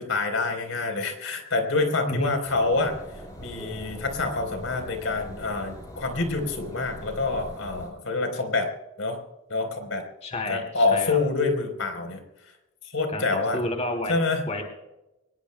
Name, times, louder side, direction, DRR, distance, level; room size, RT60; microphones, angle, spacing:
voice 1, 0.0-2.9 3.4-8.7 9.0-9.2 9.5-10.1 10.5-12.2 12.9-13.6 14.1-14.4, left 3 dB, 75° left, 6 dB, 3.9 m, -26 dB
sound 1, 2.5-7.9, equal, 15° left, 7.2 m, -42 dB
voice 2, 10.2-11.2 13.1-14.1 14.5-14.6, left 2 dB, 35° left, 3 dB, 2.7 m, -30 dB
25.0 x 21.0 x 2.2 m, 0.97 s
head